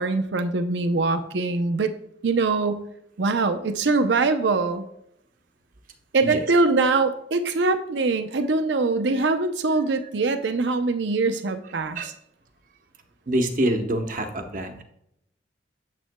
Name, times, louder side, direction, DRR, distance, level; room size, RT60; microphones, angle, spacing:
voice 1, 0.0-1.9 2.2-2.8 3.2-4.8 6.1-12.0, right 3 dB, 75° right, 9 dB, 0.6 m, -23 dB
voice 2, 13.3-14.8, right 1 dB, 45° right, 6 dB, 0.9 m, -26 dB
9.2 x 7.5 x 2.2 m, 0.76 s
head